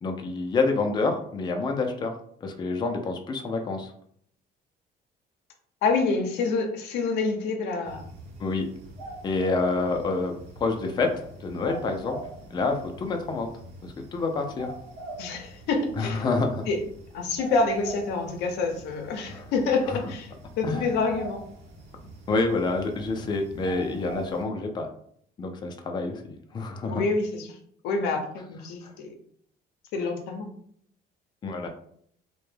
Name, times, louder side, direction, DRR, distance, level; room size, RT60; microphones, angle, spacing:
voice 1, 0.0-2.1 2.4-3.9 8.4-8.7 9.2-12.2 12.5-13.5 13.8-14.7 16.0-16.6 19.3-19.4 19.9-20.0 20.6-20.8 22.3-24.9 25.4-27.0 28.8-28.9 31.4-31.7, left 3 dB, 25° left, 4 dB, 0.4 m, -28 dB
voice 2, 5.8-8.0 15.2-16.2 16.7-16.8 17.1-21.4 26.9-27.6 27.8-29.1 29.9-30.5, left 4 dB, 85° left, 4 dB, 0.6 m, -27 dB
sound 1, 7.8-24.4, right 2 dB, 85° right, 0.8 m, -43 dB
2.2 x 2.1 x 3.1 m, 0.65 s
cardioid pair, 110°, 17 cm